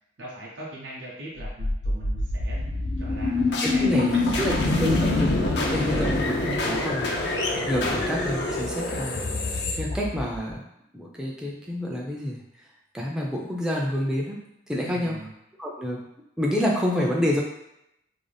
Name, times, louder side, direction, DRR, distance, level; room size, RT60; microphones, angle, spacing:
voice 1, 0.2-2.6 3.0-3.4 3.7-5.3 5.8-6.2 7.0-7.2 14.8-15.3, right 1 dB, 80° right, -5 dB, 0.6 m, -40 dB
sound 1, 1.4-10.5, left 2 dB, 65° left, 0.4 m, -25 dB
voice 2, 3.6-5.3 5.7-7.2 7.6-10.6 10.9-12.4 12.9-14.4 14.7-15.2 15.6-16.0 16.4-17.4, equal, 5° right, -3 dB, 0.3 m, -28 dB
2.5 x 2.1 x 3.2 m, 0.82 s
head